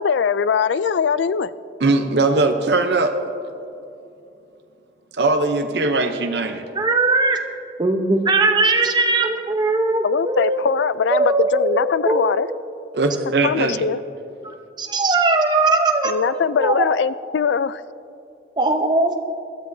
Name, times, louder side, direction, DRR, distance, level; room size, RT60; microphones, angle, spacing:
voice 1, 0.0-1.5 10.0-12.5 13.4-14.0 16.0-17.8, left 6 dB, 75° left, 16 dB, 0.4 m, -21 dB
voice 2, 1.8-3.1 5.2-6.6 12.9-13.8, right 3 dB, 65° right, 5 dB, 0.7 m, -20 dB
voice 3, 6.8-7.4 7.8-10.6 11.1-12.3 14.4-16.9 18.6-19.2, right 3 dB, 25° right, 4 dB, 0.8 m, -20 dB
21.0 x 13.0 x 2.7 m, 2.6 s
head